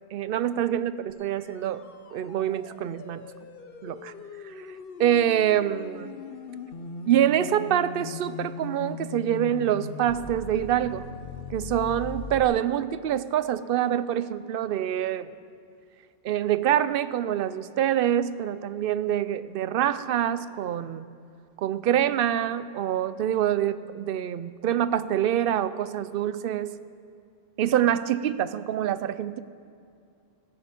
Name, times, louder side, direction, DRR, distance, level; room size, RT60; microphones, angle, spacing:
voice 1, 0.1-1.8 2.1-3.2 3.8-4.1 4.4-4.5 5.0-6.1 7.1-11.1 11.5-15.4 16.2-21.0 21.6-26.8 27.6-29.4, right 10 dB, 65° right, 14 dB, 0.7 m, -25 dB
sound 1, 1.1-12.4, left 5 dB, 60° left, 1.0 m, -40 dB
16.5 x 9.6 x 5.2 m, 2.4 s
omnidirectional pair, 1.1 m